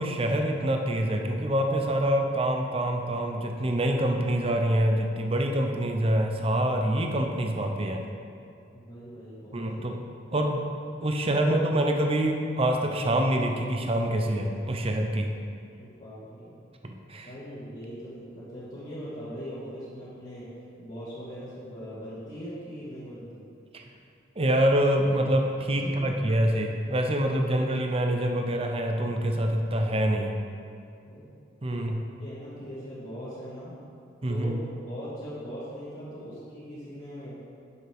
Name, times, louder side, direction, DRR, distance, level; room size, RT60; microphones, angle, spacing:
voice 1, 0.0-8.0 9.5-10.0 10.3-10.6 11.0-15.3 16.8-17.3 24.4-30.4 31.6-32.0 34.2-34.6, right 1 dB, 30° right, 3 dB, 0.6 m, -26 dB
voice 2, 8.7-9.8 10.3-10.4 15.8-16.6 17.2-20.5 20.8-23.4 25.8-26.1 31.0-31.3 31.7-31.8 32.2-33.7 34.3-34.5 34.8-37.4, equal, 35° left, -13 dB, 2.1 m, -40 dB
9.8 x 6.9 x 3.5 m, 2.5 s
head